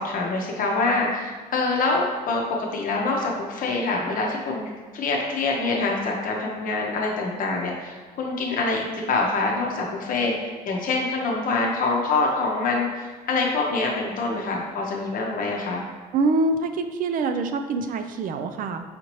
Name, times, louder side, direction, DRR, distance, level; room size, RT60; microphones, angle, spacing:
voice 1, 0.0-2.4 2.7-10.3 10.7-15.8, left 3 dB, 55° left, -1 dB, 0.7 m, -25 dB
voice 2, 16.1-18.8, right 3 dB, 55° right, 8 dB, 0.4 m, -25 dB
5.0 x 2.7 x 3.0 m, 1.4 s
cardioid pair, 110°, 17 cm